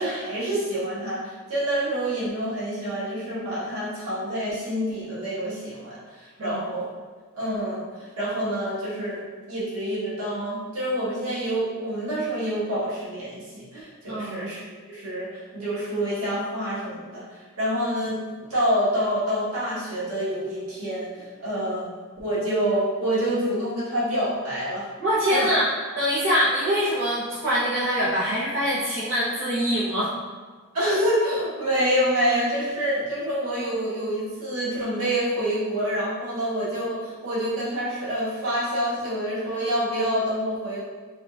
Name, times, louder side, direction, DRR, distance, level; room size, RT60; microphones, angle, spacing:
voice 1, 0.0-6.9 7.3-14.6 14.9-17.2 17.6-18.2 18.5-21.9 22.2-24.9 25.3-25.5 30.7-40.8, equal, 85° right, -8 dB, 1.5 m, -27 dB
voice 2, 14.1-14.5 25.0-25.7 25.9-30.1, equal, 60° right, -11 dB, 0.9 m, -24 dB
3.6 x 3.6 x 2.4 m, 1.4 s
head